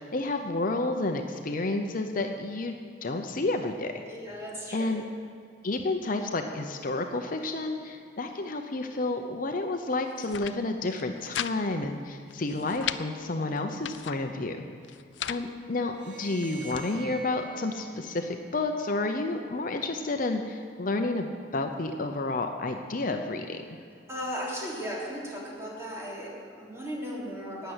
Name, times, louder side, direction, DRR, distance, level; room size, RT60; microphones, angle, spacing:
voice 1, 0.0-3.9 4.7-5.0 5.6-14.6 15.3-23.6, left 2 dB, 50° left, 5 dB, 0.7 m, -30 dB
voice 2, 4.1-5.0 24.1-27.7, equal, 15° right, -5 dB, 3.2 m, -36 dB
sound 1, 10.1-10.6 10.9-11.5 11.8-11.9 12.3-13.0 13.6-14.2 14.8-15.4 16.1-16.9, left 10 dB, 80° left, 0.5 m, -36 dB
sound 2, 15.8-19.1, right 4 dB, 75° right, 2.2 m, -47 dB
12.0 x 9.1 x 8.0 m, 2.2 s
head